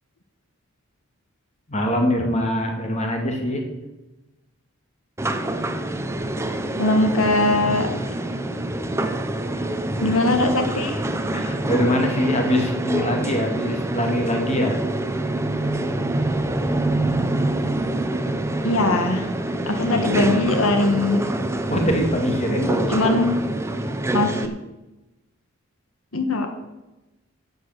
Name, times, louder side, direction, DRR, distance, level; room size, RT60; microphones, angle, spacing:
voice 1, 1.7-3.7 9.5-9.7 10.1-10.2 11.3-14.8 19.7-20.2 21.7-23.1, equal, 30° left, 3 dB, 2.2 m, -23 dB
sound 1, 5.2-24.5, right 1 dB, 10° right, 0.7 m, -26 dB
voice 2, 6.8-7.9 10.0-11.0 18.6-19.3 19.6-21.2 22.9-23.4 24.1-24.5 26.1-26.5, left 2 dB, 75° left, 6 dB, 1.4 m, -21 dB
12.0 x 8.1 x 6.6 m, 1.0 s
head